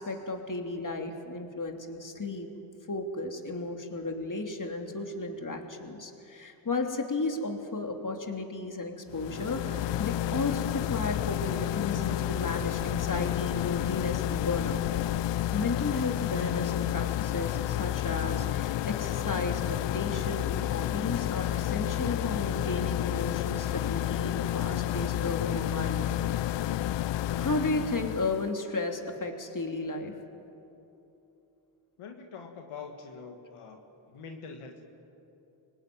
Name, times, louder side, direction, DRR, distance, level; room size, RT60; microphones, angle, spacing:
voice 1, 0.0-2.5 2.9-14.8 15.5-26.1 27.4-30.2, left 3 dB, 40° left, 3 dB, 3.2 m, -34 dB
sound 1, 9.1-28.5, left 13 dB, 60° left, 0.5 m, -30 dB
voice 2, 32.0-33.8 34.1-34.8, left 5 dB, 90° left, 3 dB, 1.8 m, -44 dB
25.0 x 18.5 x 9.5 m, 2.9 s
cardioid pair, 45°, 49 cm